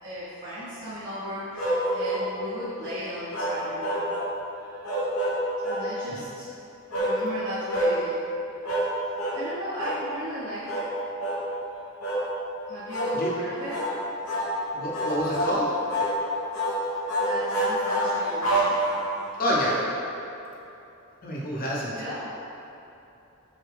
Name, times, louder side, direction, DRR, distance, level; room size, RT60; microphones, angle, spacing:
voice 1, 0.0-4.0 5.6-6.5 6.9-8.2 9.0-10.8 12.7-13.9 17.2-18.8 21.9-22.3, equal, 55° right, -14 dB, 1.0 m, -36 dB
sound 1, 1.6-2.3 3.3-4.3 4.8-5.9 6.9-7.2 7.7-8.0 8.6-8.9 9.2-9.4 9.8-10.0 10.7-10.9 11.2-11.4 12.0-12.3 12.9-13.2 13.7-13.9 14.3-14.5 14.9-15.6 15.9-16.2 16.5-16.8 17.1-19.2, right 1 dB, 80° left, 0.9 m, -27 dB
voice 2, 14.7-15.6 19.4-19.8 21.2-22.0, equal, 40° left, -4 dB, 0.7 m, -28 dB
6.0 x 2.2 x 3.5 m, 2.9 s
head